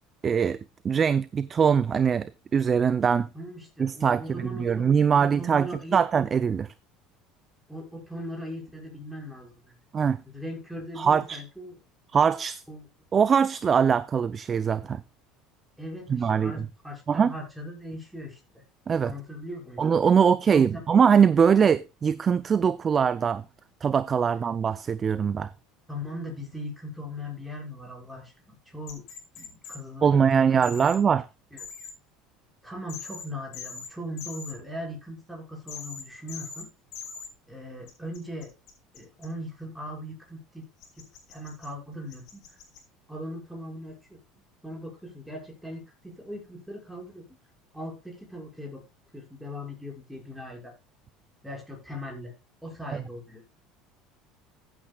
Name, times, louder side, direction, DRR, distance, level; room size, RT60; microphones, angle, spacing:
voice 1, 0.2-0.6 0.8-3.3 3.8-5.7 5.9-6.7 9.9-10.2 11.0-11.4 12.1-12.6 13.1-15.0 16.1-16.5 17.1-17.3 18.9-19.1 19.8-23.4 23.8-25.5 30.0-31.2, right 7 dB, 30° right, 0.5 m, -22 dB
voice 2, 3.3-4.9 5.2-6.0 7.7-9.8 10.3-11.7 12.7-12.8 15.8-18.6 19.0-19.8 20.4-20.8 25.9-29.1 29.4-30.9 31.5-31.7 32.6-36.7 37.5-38.5 38.9-40.7 41.0-42.6 43.1-44.2 44.6-47.3 47.7-48.8 49.1-50.8 51.4-52.3 52.6-53.4, equal, 5° right, 5.9 m, -39 dB
sound 1, 28.9-29.8 30.6-31.0 31.6-31.9 32.9-33.2 33.5-33.9 34.2-34.5 35.7-36.0 36.3-36.6 36.9-37.3 37.9-39.2 40.8-41.7 42.1-42.8, left 6 dB, 60° left, 5.4 m, -41 dB
15.0 x 8.7 x 2.3 m
supercardioid pair, 120°, 0 cm